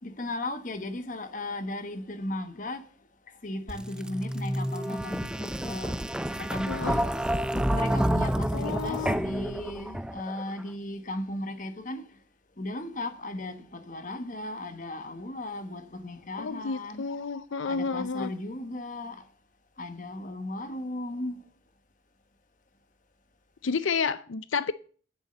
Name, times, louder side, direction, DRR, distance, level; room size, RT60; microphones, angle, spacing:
voice 1, 0.0-2.8 3.4-6.0 6.4-7.1 7.5-12.1 12.6-17.1 17.6-19.3 19.8-21.4, left 1 dB, 40° left, 1.2 m, -36 dB
sound 1, 3.7-10.4, equal, 5° right, 0.5 m, -29 dB
voice 2, 6.7-7.0 8.5-9.2 16.4-18.3 23.6-24.7, left 5 dB, 85° left, 0.6 m, -30 dB
10.5 x 7.2 x 7.7 m
head